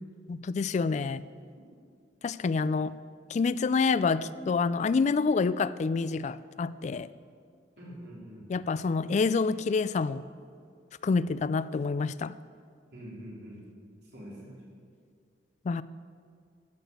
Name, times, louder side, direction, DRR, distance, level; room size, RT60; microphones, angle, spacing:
voice 1, 0.3-1.2 2.2-3.0 3.3-7.1 8.5-10.2 11.0-12.3 15.7-15.8, left 4 dB, 40° left, 16 dB, 0.3 m, -27 dB
voice 2, 7.8-8.5 12.9-13.6 14.1-14.7, equal, 65° right, -5 dB, 3.9 m, -45 dB
12.0 x 6.9 x 8.0 m, 2.2 s
head